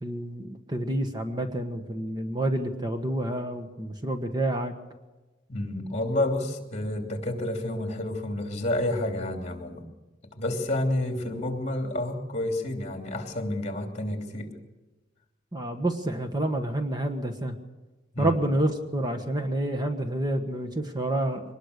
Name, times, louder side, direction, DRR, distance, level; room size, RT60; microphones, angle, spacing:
voice 1, 0.0-4.7 15.5-17.6 18.2-21.4, right 1 dB, 20° right, 6 dB, 1.4 m, -28 dB
voice 2, 5.5-9.8 10.4-14.5 18.1-18.4, left 1 dB, 35° left, 4 dB, 3.0 m, -29 dB
24.0 x 20.5 x 6.7 m, 1.1 s
head